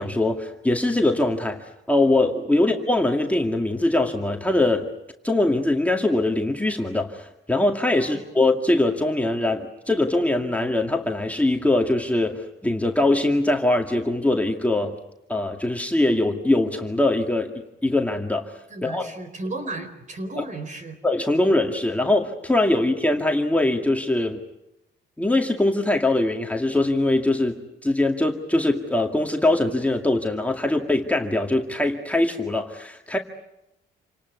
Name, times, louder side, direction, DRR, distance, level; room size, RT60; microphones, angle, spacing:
voice 1, 0.0-4.9 5.2-15.0 15.3-17.5 17.8-18.5 18.8-19.1 20.4-20.5 21.0-24.4 25.2-33.2, left 2 dB, 5° left, 2 dB, 2.2 m, -22 dB
voice 2, 18.7-21.0, right 2 dB, 40° right, 9 dB, 4.4 m, -34 dB
28.0 x 18.5 x 9.5 m, 0.87 s
cardioid pair, 90°, 20 cm